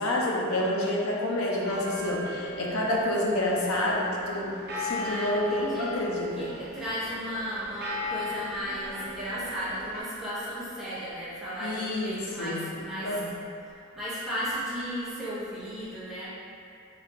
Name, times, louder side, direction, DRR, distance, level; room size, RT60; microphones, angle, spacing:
voice 1, 0.0-6.5 11.6-12.6 13.0-13.3, left 1 dB, 75° left, -3 dB, 0.7 m, -28 dB
sound 1, 1.6-10.0, left 1 dB, 45° right, 0.6 m, -38 dB
voice 2, 4.8-5.9 6.4-13.2 13.6-16.3, equal, ahead, -13 dB, 1.0 m, -35 dB
4.0 x 2.7 x 3.7 m, 2.5 s
head